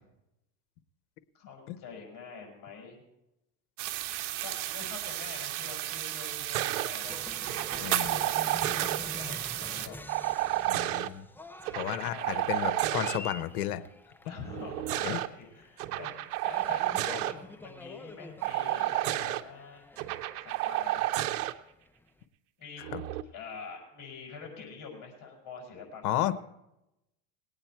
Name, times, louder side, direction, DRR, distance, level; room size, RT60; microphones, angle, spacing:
voice 1, 1.3-3.0 4.4-7.2 7.6-10.0 12.0-12.7 13.0-13.1 14.3-19.8 20.3-21.1 22.6-22.8 23.3-26.3, left 5 dB, 45° left, 1 dB, 5.6 m, -45 dB
sound 1, 3.8-9.9, right 15 dB, 65° right, 1.0 m, -34 dB
sound 2, 6.5-6.9 7.4-9.0 10.1-11.1 11.6-13.2 14.5-15.3 15.8-17.3 18.4-19.4 20.0-21.5 22.8-23.2, right 15 dB, 90° right, 0.8 m, -31 dB
Cheering, 7.0-22.2, left 1 dB, 5° left, 0.6 m, -47 dB
voice 2, 7.8-8.1 10.7-11.2 11.7-13.8 15.0-15.2 22.9-23.0 26.0-26.3, left 13 dB, 80° left, 13 dB, 0.9 m, -32 dB
19.5 x 8.9 x 4.5 m, 0.90 s
supercardioid pair, 105°, 43 cm